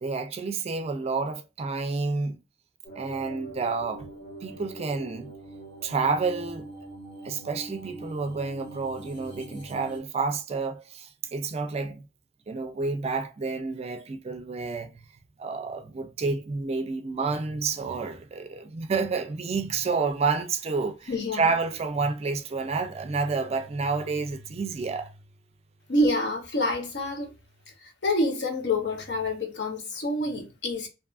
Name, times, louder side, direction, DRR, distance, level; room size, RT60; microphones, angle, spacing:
voice 1, 0.0-2.4 2.9-4.1 4.4-5.3 5.8-6.7 7.2-12.1 12.5-14.9 15.4-25.1, right 4 dB, 35° right, 0.4 m, -29 dB
sound 1, 2.8-10.0, right 2 dB, 30° left, 1.2 m, -43 dB
voice 2, 21.1-21.4 25.9-27.3 27.8-30.9, left 1 dB, 70° left, 0.8 m, -27 dB
2.6 x 2.4 x 2.3 m
head